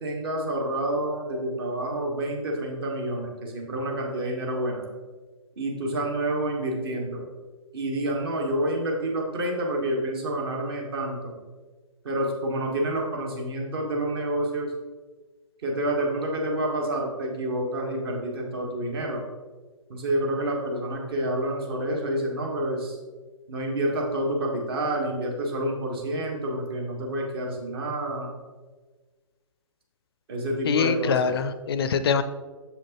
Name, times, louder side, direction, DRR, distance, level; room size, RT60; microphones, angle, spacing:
voice 1, 0.0-4.9 5.6-7.2 7.7-11.4 12.0-14.7 15.6-19.2 19.9-23.0 23.5-28.3 30.3-31.3, right 1 dB, 45° right, 1 dB, 1.3 m, -28 dB
voice 2, 30.6-32.2, left 6 dB, 45° left, 13 dB, 0.4 m, -24 dB
6.9 x 5.0 x 2.9 m, 1.4 s
figure-of-eight pair, 130°, 17 cm